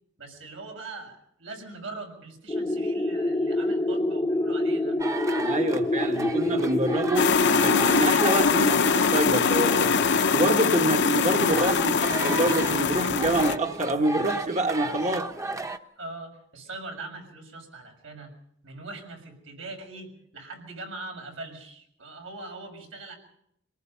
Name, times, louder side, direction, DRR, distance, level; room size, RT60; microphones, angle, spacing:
voice 1, 0.2-5.0 16.0-18.3 18.6-23.1, right 3 dB, 85° right, 4 dB, 6.7 m, -41 dB
sound 1, 2.5-8.2, left 1 dB, 20° left, 0.8 m, -26 dB
sound 2, 5.0-15.8, right 2 dB, 15° right, 0.9 m, -35 dB
voice 2, 5.4-10.0 10.3-15.3, right 1 dB, 40° right, 4 dB, 1.2 m, -26 dB
sound 3, 7.2-13.6, left 5 dB, 60° left, 0.8 m, -23 dB
26.0 x 18.5 x 5.5 m, 0.71 s
head